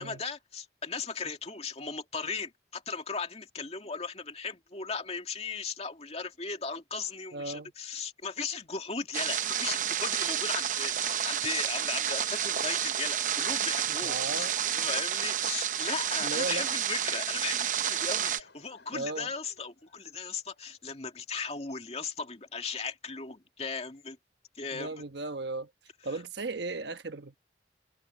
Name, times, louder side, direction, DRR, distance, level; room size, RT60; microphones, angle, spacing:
voice 1, 0.0-14.5 14.7-24.2 24.5-24.9, left 5 dB, 35° left, 2.3 m, -37 dB
voice 2, 7.3-7.7 13.9-14.5 16.2-16.7 18.9-19.3 24.7-25.7 26.0-27.4, right 3 dB, 70° right, 1.2 m, -36 dB
sound 1, 9.1-18.4, right 9 dB, 45° right, 0.8 m, -30 dB
Laughter / Crowd, 17.6-21.3, left 3 dB, 75° left, 6.7 m, -62 dB
head